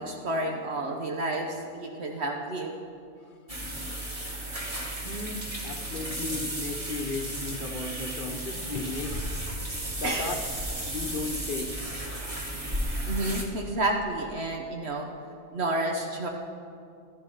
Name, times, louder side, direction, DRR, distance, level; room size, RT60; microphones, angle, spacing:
voice 1, 0.0-2.7 10.0-10.4 12.2-12.3 13.1-15.1 15.5-16.3, right 2 dB, 65° right, 1.3 m, -30 dB
sound 1, 3.5-13.4, right 1 dB, 30° right, 1.7 m, -34 dB
voice 2, 5.0-9.3 10.0-10.3 10.8-12.0, left 3 dB, 50° left, 1.1 m, -35 dB
14.0 x 11.5 x 5.6 m
omnidirectional pair, 1.2 m